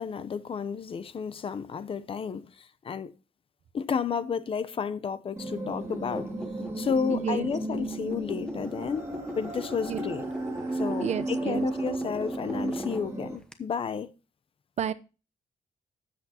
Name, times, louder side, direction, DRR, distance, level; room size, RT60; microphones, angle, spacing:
voice 1, 0.0-3.1 3.7-6.3 6.8-9.1 9.4-10.3 10.7-14.1, left 6 dB, 40° left, 0.6 m, -32 dB
sound 1, 5.4-13.4, right 2 dB, 20° right, 2.8 m, -34 dB
sound 2, 5.8-13.5, equal, 5° left, 1.0 m, -41 dB
voice 2, 7.1-7.4 9.9-10.0 11.0-11.7 14.8-14.9, right 9 dB, 50° right, 0.6 m, -30 dB
13.0 x 8.3 x 2.8 m
wide cardioid pair, 155°, 15 cm